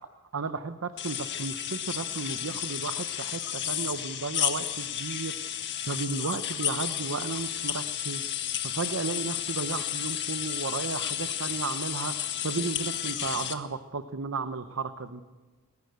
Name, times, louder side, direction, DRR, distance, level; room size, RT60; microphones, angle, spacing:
voice 1, 0.3-5.4 5.9-8.2 8.6-15.2, right 4 dB, 65° right, 10 dB, 0.8 m, -34 dB
sound 1, 1.0-13.5, left 10 dB, 55° left, 1.6 m, -32 dB
18.5 x 18.0 x 8.2 m, 1.3 s
head